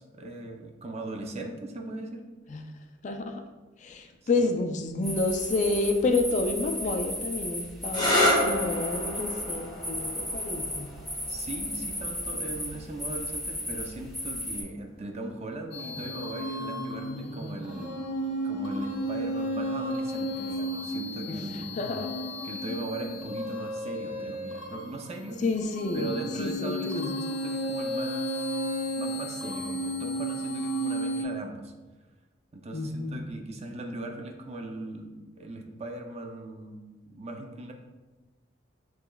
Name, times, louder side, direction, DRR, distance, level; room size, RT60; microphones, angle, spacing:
voice 1, 0.0-2.2 4.2-4.5 11.3-18.0 18.4-21.7 22.4-25.4 25.9-28.5 29.0-31.7 32.5-37.7, right 2 dB, 35° right, 3 dB, 0.5 m, -39 dB
voice 2, 3.8-10.9 21.3-21.4 21.8-22.1 25.4-26.1 26.4-27.1 32.7-33.2, left 3 dB, 40° left, 6 dB, 0.4 m, -29 dB
sound 1, 5.0-14.6, left 1 dB, ahead, 0.7 m, -35 dB
sound 2, 7.8-15.3 16.3-16.8 20.3-20.7, left 1 dB, 20° left, 1.0 m, -31 dB
sound 3, 15.7-31.2, equal, 85° left, 0.6 m, -33 dB
6.7 x 3.1 x 2.3 m, 1.2 s
head